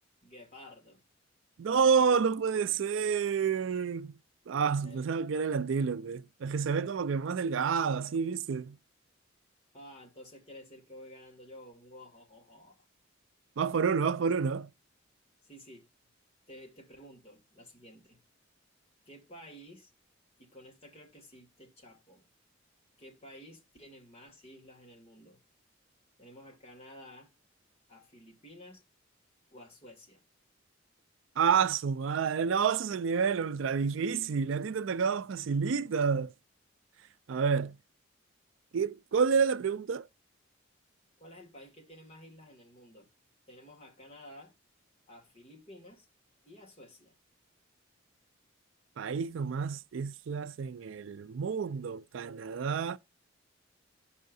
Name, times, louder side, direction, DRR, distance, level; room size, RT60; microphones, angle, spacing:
voice 1, 0.2-1.0 4.5-5.6 9.7-12.8 14.2-14.3 15.4-15.9 16.5-18.2 19.1-19.9 20.4-22.2 23.0-25.4 26.2-27.3 27.9-28.8 29.5-30.2 41.2-43.1 43.5-44.5 45.1-46.1 46.4-47.2, left 1 dB, 30° left, 2.3 m, -52 dB
voice 2, 1.6-4.1 4.5-8.8 13.6-14.7 31.4-36.3 37.3-37.8 38.7-40.1 49.0-53.0, right 6 dB, 75° right, 0.4 m, -29 dB
15.0 x 5.6 x 2.6 m
head